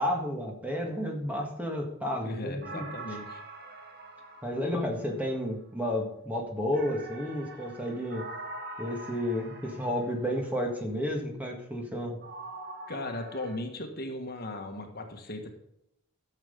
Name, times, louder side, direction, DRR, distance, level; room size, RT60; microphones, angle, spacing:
voice 1, 0.0-2.9 4.4-8.2 8.8-12.2, left 1 dB, 5° right, 1 dB, 1.7 m, -31 dB
voice 2, 2.2-3.4 12.9-15.5, left 1 dB, 45° left, 4 dB, 1.6 m, -37 dB
sound 1, 2.6-5.4 6.7-10.6 12.2-13.6, right 2 dB, 45° right, 1.6 m, -44 dB
13.0 x 7.4 x 5.3 m, 0.79 s
head